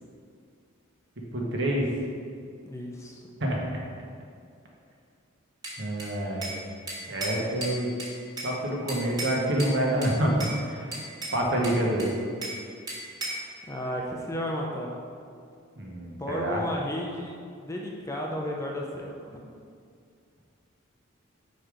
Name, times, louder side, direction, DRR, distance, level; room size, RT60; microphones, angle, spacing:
voice 1, 1.3-1.9 3.4-3.8 5.8-6.5 7.1-7.9 8.4-10.9 11.3-12.1 15.8-16.6, right 1 dB, 60° right, -2 dB, 1.1 m, -27 dB
voice 2, 2.7-3.2 13.7-15.0 16.2-17.4 17.6-19.4, equal, 15° left, -1 dB, 0.5 m, -33 dB
Bell / Glass, 5.6-6.6 6.9-8.5 8.9-9.7 10.0-10.6 10.9-12.6 12.9-13.5, right 1 dB, 20° right, 1.5 m, -35 dB
5.2 x 4.4 x 4.9 m, 2.3 s
head